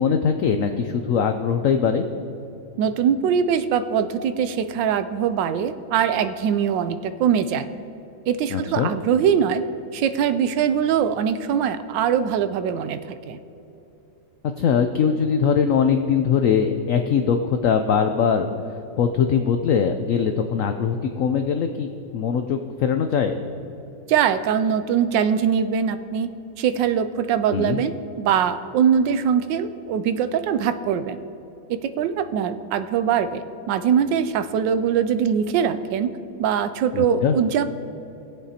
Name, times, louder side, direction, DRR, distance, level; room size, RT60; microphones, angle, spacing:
voice 1, 0.0-2.0 8.5-8.9 14.6-18.5 19.0-23.4 27.5-27.8 36.9-37.3, left 7 dB, 90° left, 6 dB, 0.7 m, -21 dB
voice 2, 2.8-7.7 8.3-9.6 9.9-13.0 13.3-13.4 24.1-26.3 26.6-31.2 31.7-36.1 36.4-37.7, right 8 dB, 80° right, 11 dB, 1.2 m, -22 dB
19.5 x 7.7 x 2.8 m, 2.9 s
omnidirectional pair, 2.0 m